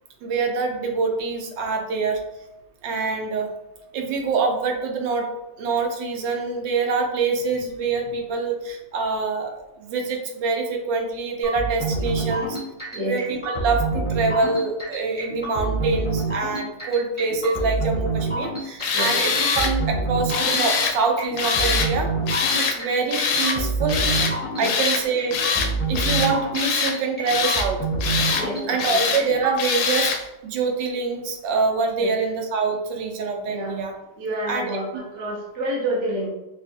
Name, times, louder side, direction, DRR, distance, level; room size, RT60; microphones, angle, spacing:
voice 1, 0.2-2.2 2.8-3.5 3.9-5.3 5.6-9.5 9.8-12.6 13.0-22.1 22.6-24.2 24.6-25.4 25.9-27.8 28.7-33.9 34.5-34.8, right 4 dB, 75° right, 2 dB, 1.3 m, -25 dB
sound 1, 11.4-29.5, right 3 dB, 5° left, 1.0 m, -27 dB
Tools, 18.8-19.7 20.3-21.0 21.4-21.9 22.3-22.8 23.1-23.6 23.9-24.3 24.6-25.0 25.3-25.7 26.0-27.0 27.3-27.7 28.0-28.5 28.8-29.2 29.6-30.2, left 5 dB, 75° left, 1.2 m, -23 dB
voice 2, 28.3-29.0 32.0-32.1 33.5-33.8 34.2-36.3, right 1 dB, 50° right, -4 dB, 1.0 m, -29 dB
5.4 x 2.4 x 2.7 m, 0.93 s
omnidirectional pair, 2.1 m